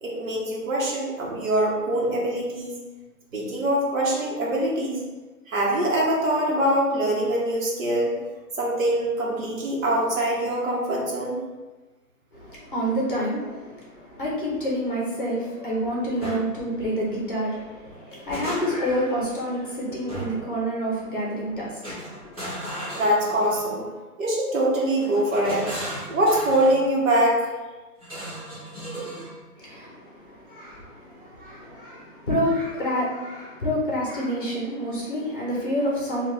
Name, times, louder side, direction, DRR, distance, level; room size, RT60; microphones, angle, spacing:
voice 1, 0.0-2.8 3.3-5.0 5.5-8.2 8.6-11.4 22.9-23.9 24.2-25.7 26.1-27.5, right 1 dB, 55° right, -4 dB, 1.1 m, -23 dB
voice 2, 12.3-22.6 29.6-36.3, equal, 35° left, -4 dB, 0.8 m, -28 dB
sound 1, 16.2-16.4 17.8-19.0 20.1-20.5 21.8-23.7 25.0-26.8 28.0-29.3, right 1 dB, 25° right, 1.1 m, -36 dB
3.4 x 2.5 x 3.0 m, 1.2 s
hypercardioid pair, 175°, 46 cm